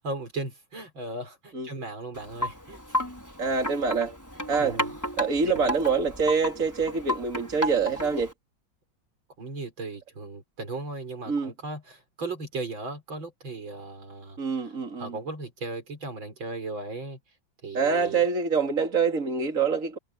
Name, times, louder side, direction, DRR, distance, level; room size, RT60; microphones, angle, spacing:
voice 1, 0.0-2.8 4.6-4.8 5.4-5.6 9.4-14.4 15.0-17.2 17.6-18.2, right 2 dB, 80° right, 6.0 m, -36 dB
Wind chime, 2.1-8.3, equal, 10° left, 5.5 m, -33 dB
voice 2, 3.4-4.2 4.5-4.8 5.2-8.3 11.3-11.5 14.4-15.2 17.7-20.0, right 5 dB, 45° right, 3.3 m, -25 dB
omnidirectional pair, 2.1 m